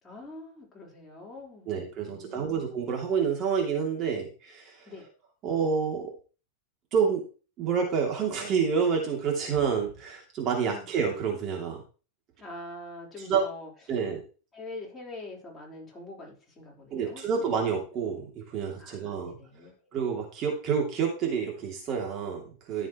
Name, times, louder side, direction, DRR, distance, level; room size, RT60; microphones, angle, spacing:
voice 1, 0.0-2.7 4.9-5.1 10.7-10.9 12.4-13.7 14.5-17.2 18.8-19.9, left 2 dB, 10° left, -3 dB, 4.2 m, -44 dB
voice 2, 1.7-4.9 5.4-6.1 6.9-7.2 7.6-11.8 13.3-13.4 13.9-14.2 16.9-19.4 19.9-22.9, right 6 dB, 35° right, 1 dB, 2.8 m, -28 dB
13.5 x 7.3 x 3.1 m, 0.35 s
supercardioid pair, 140°, 0 cm